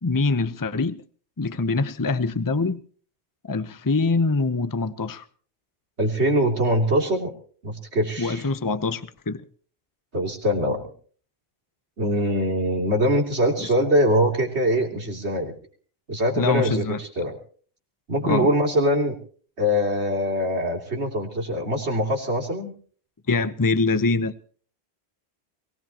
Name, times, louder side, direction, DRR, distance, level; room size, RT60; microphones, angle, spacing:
voice 1, 0.0-1.0 1.4-2.8 3.4-5.2 8.2-9.4 13.6-13.7 16.4-17.0 18.2-18.5 23.3-24.3, left 3 dB, 20° left, 13 dB, 0.8 m, -24 dB
voice 2, 6.0-7.3 7.6-8.4 10.1-10.8 12.0-15.5 16.1-17.4 18.1-19.2 19.6-22.7, equal, 85° right, 3 dB, 3.4 m, -23 dB
23.0 x 18.5 x 2.9 m, 0.44 s
omnidirectional pair, 1.1 m